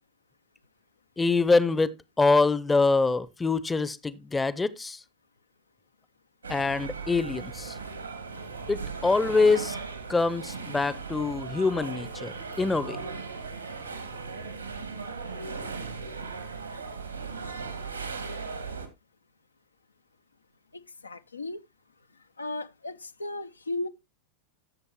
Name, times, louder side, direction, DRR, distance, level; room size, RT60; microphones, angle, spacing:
voice 1, 1.2-1.9 2.2-5.0 6.5-7.7 8.7-9.8 10.1-13.0, left 3 dB, 10° left, 0.6 m, -25 dB
sound 1, 6.4-18.9, right 4 dB, 80° right, 1.9 m, -37 dB
voice 2, 20.7-21.6 22.4-23.9, left 2 dB, 80° left, 0.5 m, -35 dB
14.0 x 6.8 x 2.9 m
figure-of-eight pair, 90°, 0 cm